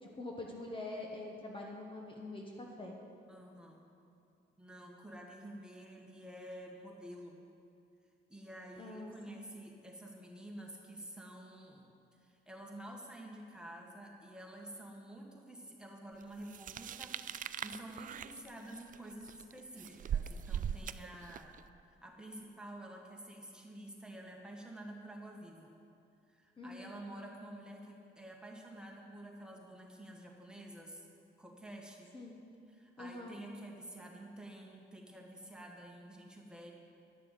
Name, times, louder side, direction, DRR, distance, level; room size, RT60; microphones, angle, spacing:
voice 1, 0.0-3.0 8.8-9.4 26.6-27.0 32.1-32.4 33.0-33.4, left 2 dB, 25° left, -1 dB, 1.3 m, -45 dB
voice 2, 3.3-3.9 4.6-7.4 8.3-11.9 12.2-21.6 21.9-25.8 26.3-31.1 31.4-32.1 32.7-36.7, right 1 dB, 5° right, -1 dB, 1.8 m, -50 dB
sound 1, 16.5-21.6, right 9 dB, 45° right, 0.4 m, -40 dB
11.5 x 6.8 x 8.3 m, 2.6 s
cardioid pair, 90°, 20 cm